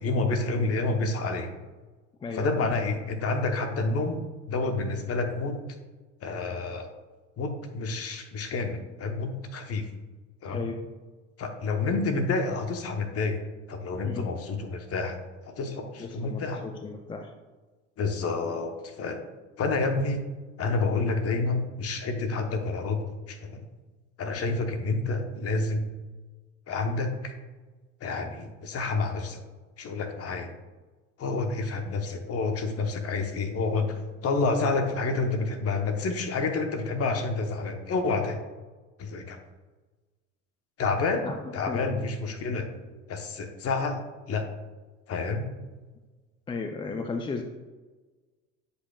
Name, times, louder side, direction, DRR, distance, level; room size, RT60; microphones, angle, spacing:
voice 1, 0.0-1.5 2.3-4.2 4.5-5.6 6.2-6.9 7.4-9.9 10.4-10.6 11.4-13.4 13.7-15.2 15.5-16.6 18.0-19.2 19.6-20.2 20.6-23.0 23.3-23.6 24.2-25.9 26.7-27.3 28.0-29.4 29.8-30.5 31.2-38.4 39.0-39.4 40.8-42.7 43.1-44.0 44.3-44.5 45.1-45.5, left 3 dB, 40° left, 5 dB, 1.0 m, -29 dB
voice 2, 2.2-2.7 10.5-10.8 14.0-14.3 16.0-17.3 41.2-41.8 46.5-47.4, left 4 dB, 15° left, 6 dB, 0.4 m, -35 dB
8.1 x 5.4 x 2.3 m, 1.3 s
hypercardioid pair, 80°, 38 cm